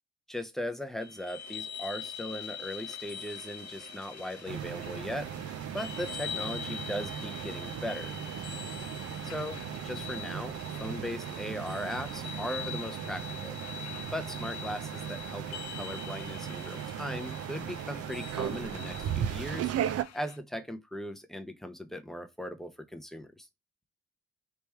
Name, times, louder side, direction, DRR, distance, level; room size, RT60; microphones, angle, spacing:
voice 1, 0.3-5.3 5.7-8.2 9.2-13.6 14.1-15.4 15.7-23.5, equal, ahead, 0.7 m, -38 dB
sound 1, 1.0-20.4, left 9 dB, 65° left, 0.7 m, -44 dB
sound 2, 1.4-19.4, right 10 dB, 75° right, 0.8 m, -54 dB
sound 3, 4.5-20.0, right 9 dB, 55° right, 0.5 m, -37 dB
3.5 x 3.0 x 4.4 m
cardioid pair, 90°, 30 cm